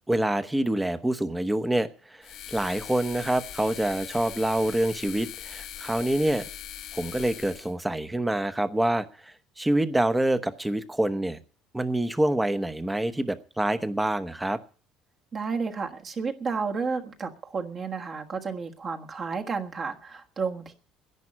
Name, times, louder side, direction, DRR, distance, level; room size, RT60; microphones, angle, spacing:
voice 1, 0.1-6.5 6.9-11.4 11.7-14.6, right 1 dB, 5° right, 11 dB, 0.9 m, -26 dB
sound 1, 2.2-7.7, left 11 dB, 60° left, 1.0 m, -41 dB
voice 2, 15.3-20.7, right 5 dB, 35° right, 3 dB, 1.4 m, -31 dB
11.0 x 9.9 x 9.9 m, 0.42 s
cardioid pair, 145°, 0 cm